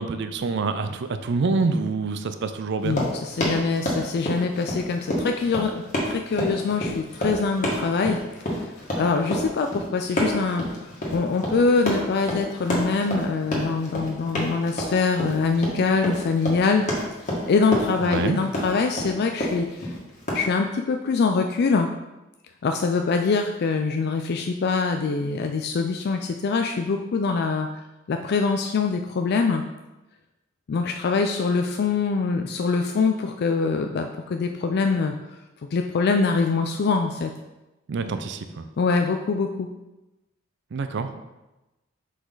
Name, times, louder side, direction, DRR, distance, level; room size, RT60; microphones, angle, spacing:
voice 1, 0.0-3.0 18.0-18.4 37.9-38.7 40.7-41.2, right 4 dB, 60° right, 9 dB, 0.5 m, -26 dB
voice 2, 2.8-8.2 8.4-16.9 17.5-20.0 20.3-21.9 22.6-27.7 28.1-29.6 30.7-35.1 35.7-37.3 38.8-39.7, left 4 dB, 55° left, 5 dB, 0.4 m, -24 dB
Run, 2.8-20.5, equal, 40° left, 1.6 m, -28 dB
6.1 x 5.0 x 3.9 m, 1.0 s
head